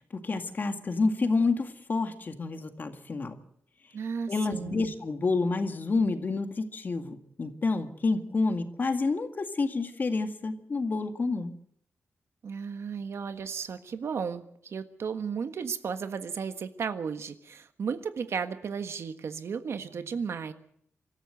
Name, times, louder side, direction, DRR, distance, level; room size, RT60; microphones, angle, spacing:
voice 1, 0.2-3.4 4.3-11.5, left 3 dB, 45° left, 7 dB, 2.0 m, -29 dB
voice 2, 3.9-4.9 12.4-20.5, right 6 dB, 70° right, 9 dB, 1.5 m, -34 dB
25.0 x 14.0 x 7.9 m, 0.67 s
wide cardioid pair, 115°, 5 cm